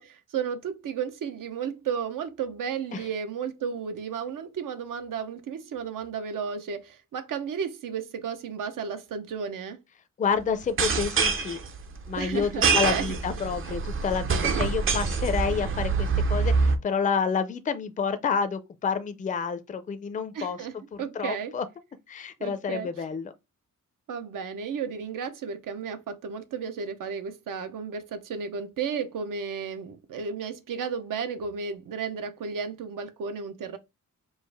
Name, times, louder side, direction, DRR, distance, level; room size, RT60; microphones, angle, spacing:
voice 1, 0.0-9.8 12.2-13.2 20.3-21.5 22.4-22.9 24.1-33.8, right 6 dB, 80° right, 0.7 m, -33 dB
voice 2, 10.2-11.6 12.1-21.7 22.1-23.3, left 6 dB, 25° left, 0.4 m, -29 dB
sound 1, 10.6-16.8, right 5 dB, 40° right, 0.5 m, -26 dB
4.7 x 2.4 x 3.3 m
wide cardioid pair, 175°, 32 cm